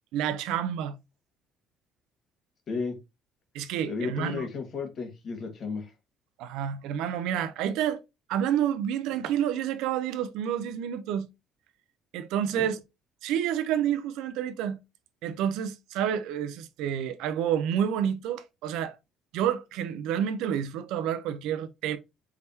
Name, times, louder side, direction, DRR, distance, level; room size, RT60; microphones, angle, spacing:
voice 1, 0.1-1.0 3.5-4.5 6.4-8.0 8.3-11.3 12.1-12.8 13.2-14.8 15.2-18.9 19.3-22.0, right 9 dB, 85° right, 0.6 m, -29 dB
voice 2, 3.9-5.9 12.5-12.7, left 4 dB, 45° left, 1.5 m, -33 dB
4.7 x 3.5 x 2.7 m
cardioid pair, 125°, 0 cm